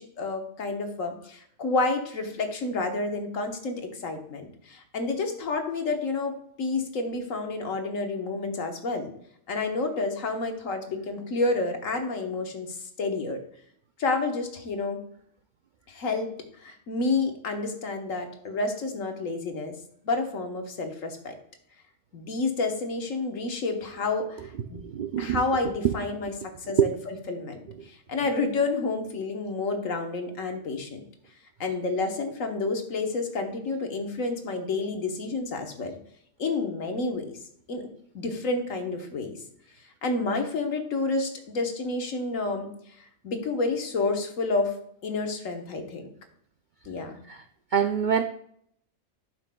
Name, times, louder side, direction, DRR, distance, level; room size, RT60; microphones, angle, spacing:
voice 1, 0.0-9.1 9.5-13.4 14.0-15.0 15.9-16.3 16.6-19.7 20.0-21.3 22.1-24.8 25.2-26.3 26.7-26.9 27.3-31.0 31.6-36.0 36.4-37.3 37.7-37.8 38.1-39.4 40.0-42.7 43.2-44.8 45.0-46.0 46.8-47.2, left 3 dB, 75° left, 5 dB, 1.6 m, -29 dB
voice 2, 24.8-25.4 25.8-25.9 26.8-26.9 47.3-47.4 47.7-48.2, right 8 dB, 70° right, 8 dB, 0.4 m, -24 dB
11.5 x 5.8 x 2.3 m, 0.68 s
omnidirectional pair, 1.4 m